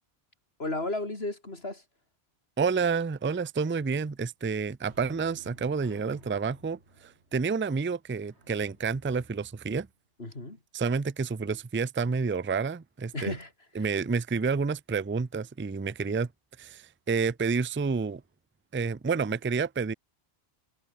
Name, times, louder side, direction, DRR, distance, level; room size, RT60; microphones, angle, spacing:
voice 1, 0.6-1.8 10.2-10.6 13.1-13.5 13.8-13.9, left 2 dB, 70° left, 4.4 m, -34 dB
voice 2, 2.6-9.9 10.7-13.3 13.8-16.3 16.6-18.2 18.7-19.9, right 5 dB, 20° right, 0.3 m, -29 dB
sound 1, 4.8-10.2 17.5-17.7 18.1-18.2, right 2 dB, 85° right, 5.4 m, -56 dB
omnidirectional pair, 1.1 m